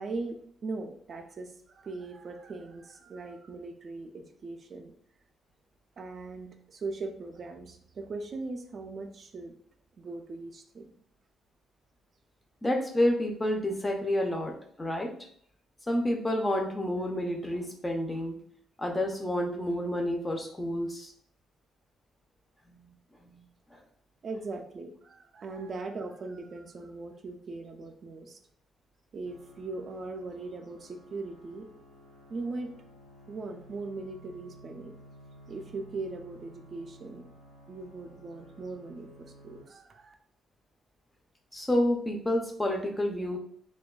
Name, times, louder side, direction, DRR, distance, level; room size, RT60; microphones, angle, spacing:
voice 1, 0.0-4.9 6.0-9.6 10.0-11.0 24.2-28.4 29.1-31.7 32.3-32.7 33.3-34.9 35.5-37.3 37.7-40.1, right 3 dB, 50° right, 5 dB, 0.3 m, -39 dB
voice 2, 12.6-15.1 15.9-18.3 18.8-21.1 23.2-23.4 23.7-23.8 41.5-43.4, left 1 dB, 15° left, 3 dB, 0.4 m, -29 dB
sound 1, 29.2-39.6, equal, 70° left, 0.6 m, -54 dB
2.5 x 2.2 x 2.3 m, 0.63 s
cardioid pair, 90°, 0 cm